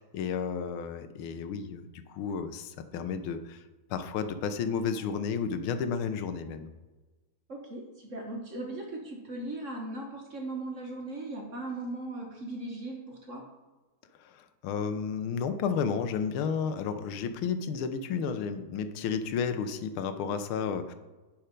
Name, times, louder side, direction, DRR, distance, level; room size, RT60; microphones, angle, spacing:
voice 1, 0.0-3.6 3.9-6.7 14.2-20.9, left 6 dB, 85° left, 10 dB, 1.6 m, -32 dB
voice 2, 7.5-13.5, right 2 dB, 40° right, 1 dB, 1.4 m, -38 dB
10.5 x 4.4 x 5.2 m, 1.2 s
omnidirectional pair, 2.3 m